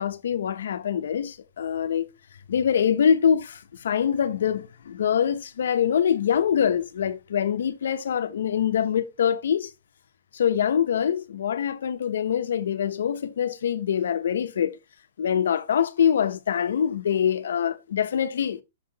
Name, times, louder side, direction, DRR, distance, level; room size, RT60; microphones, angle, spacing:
voice 1, 0.0-2.1 2.5-9.7 10.3-14.8 15.2-18.6, left 8 dB, 65° left, 0.8 m, -24 dB
6.4 x 5.8 x 2.8 m
hypercardioid pair, 175°, 0 cm